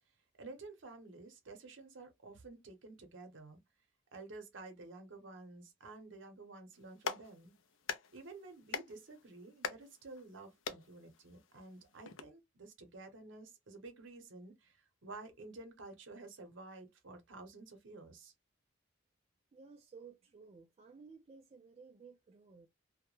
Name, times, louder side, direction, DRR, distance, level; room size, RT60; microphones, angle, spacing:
voice 1, 0.4-3.6 4.1-7.5 8.1-18.3, right 3 dB, 70° right, 0.8 m, -52 dB
Clapping, 6.7-12.2, left 6 dB, 80° left, 0.4 m, -45 dB
voice 2, 19.5-22.7, right 5 dB, 30° right, 0.3 m, -56 dB
2.2 x 2.0 x 3.0 m
head